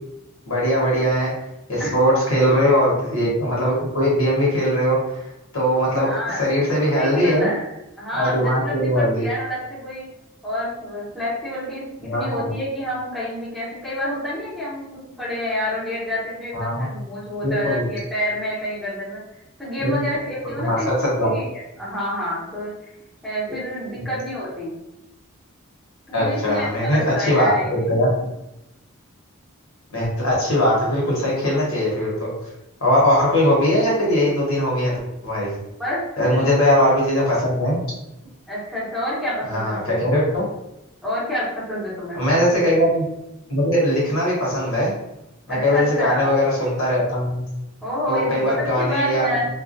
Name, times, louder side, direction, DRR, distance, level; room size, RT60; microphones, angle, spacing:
voice 1, 0.5-1.3 1.7-5.2 5.5-7.5 8.1-9.3 12.0-12.5 16.5-16.9 17.4-17.9 19.8-20.0 20.6-21.3 23.5-23.6 23.9-24.0 26.1-28.1 29.9-32.3 32.8-34.9 35.2-35.6 36.2-37.8 39.5-40.4 42.1-43.0 43.5-44.9 45.5-47.4 48.1-49.2, equal, 80° left, -5 dB, 1.0 m, -20 dB
voice 2, 6.0-6.4 6.8-7.7 8.0-10.1 10.4-19.2 19.6-22.7 23.2-24.7 26.1-27.7 35.8-36.7 38.5-40.0 41.0-42.2 45.5-46.3 47.8-49.5, equal, ahead, -10 dB, 0.8 m, -28 dB
2.3 x 2.1 x 2.5 m, 0.91 s
head